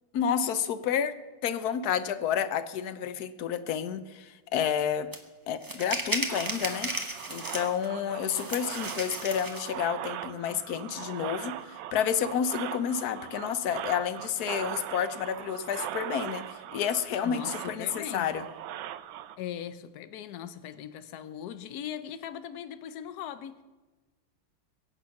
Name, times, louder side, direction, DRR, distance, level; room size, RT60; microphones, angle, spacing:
voice 1, 0.1-1.2 1.4-5.1 5.5-6.9 7.3-18.4, left 8 dB, 60° left, 1.0 m, -30 dB
sound 1, 5.1-5.2 5.6-7.9 8.3-9.7, right 1 dB, 15° right, 0.9 m, -34 dB
sound 2, 6.3-19.4, right 12 dB, 70° right, 1.3 m, -40 dB
voice 2, 17.2-18.3 19.4-23.6, left 10 dB, 85° left, 0.8 m, -39 dB
22.5 x 8.8 x 5.8 m
omnidirectional pair, 2.4 m